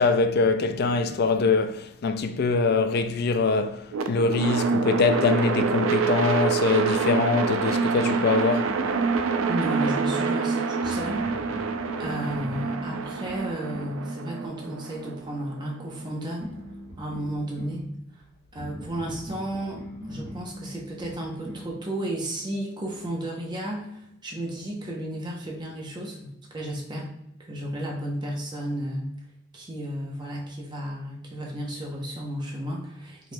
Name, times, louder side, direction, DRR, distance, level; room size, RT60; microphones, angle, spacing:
voice 1, 0.0-8.7, left 4 dB, 50° left, 0.3 m, -23 dB
sound 1, 3.9-16.0, right 4 dB, 80° right, 0.4 m, -26 dB
sound 2, 8.7-10.1 10.8-14.0 16.4-17.8 18.6-21.7, equal, 35° right, 1.2 m, -40 dB
voice 2, 9.5-11.2 12.0-16.5 17.0-17.9 18.5-27.1 27.4-29.1 29.5-33.3, right 1 dB, 20° right, 0.7 m, -33 dB
4.7 x 2.9 x 2.2 m
head